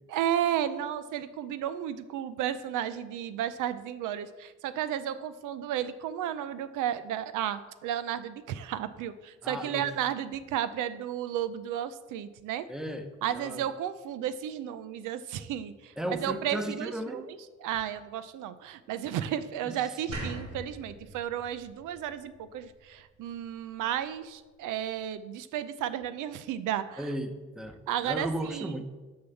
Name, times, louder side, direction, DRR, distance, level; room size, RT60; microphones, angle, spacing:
voice 1, 0.1-12.7 13.2-27.1 27.9-28.8, right 10 dB, 85° right, 12 dB, 0.6 m, -33 dB
voice 2, 9.4-9.9 12.7-13.1 13.3-13.7 16.0-17.3 19.7-19.8 27.0-27.8 28.0-28.8, right 1 dB, ahead, 7 dB, 0.9 m, -35 dB
sound 1, 20.1-23.3, right 2 dB, 55° right, 2.7 m, -42 dB
6.6 x 5.5 x 6.9 m, 1.3 s
cardioid pair, 90°, 30 cm